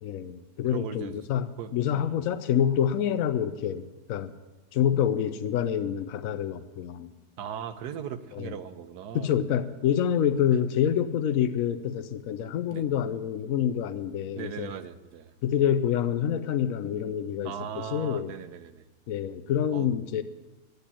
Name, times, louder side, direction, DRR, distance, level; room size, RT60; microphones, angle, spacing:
voice 1, 0.0-4.3 4.7-7.1 8.3-8.5 9.1-14.7 15.4-17.5 17.9-18.3 19.1-20.2, left 9 dB, 70° left, 0.9 m, -27 dB
voice 2, 0.6-2.3 7.4-9.4 12.7-12.9 14.4-15.3 17.4-18.8 19.7-19.9, right 8 dB, 90° right, 1.3 m, -39 dB
12.0 x 8.2 x 8.4 m
omnidirectional pair, 1.7 m